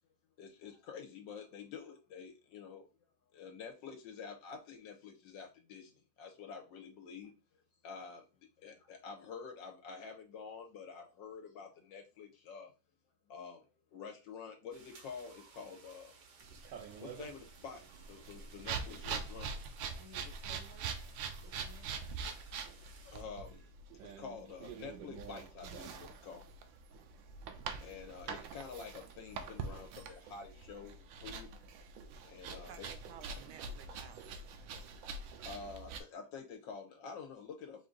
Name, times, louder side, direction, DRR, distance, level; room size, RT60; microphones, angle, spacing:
voice 1, 0.4-2.9 3.3-5.9 6.2-7.3 7.8-8.2 8.6-12.7 13.3-13.6 13.9-16.1 17.0-19.5 23.0-26.4 27.8-31.5 32.3-32.9 35.4-37.9, left 5 dB, 80° left, 3 dB, 1.5 m, -48 dB
sound 1, 14.7-23.2, right 5 dB, 55° right, 0.9 m, -60 dB
sound 2, 16.4-36.0, right 5 dB, 90° right, 1.4 m, -44 dB
voice 2, 20.0-22.0, left 2 dB, 55° left, 2 dB, 0.8 m, -58 dB
voice 3, 32.5-34.4 35.8-35.9, right 8 dB, 70° right, 8 dB, 1.2 m, -55 dB
4.7 x 2.6 x 3.7 m, 0.30 s
omnidirectional pair, 2.0 m